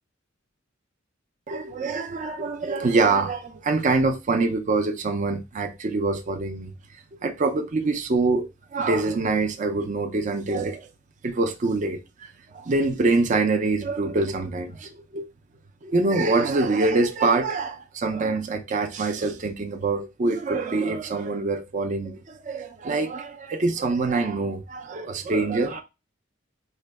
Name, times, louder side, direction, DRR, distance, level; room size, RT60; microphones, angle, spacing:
voice 1, 1.5-6.7 7.2-8.5 8.7-10.9 11.2-15.3 15.8-25.8, right 3 dB, 40° right, 0.5 m, -25 dB
4.4 x 2.2 x 3.3 m
head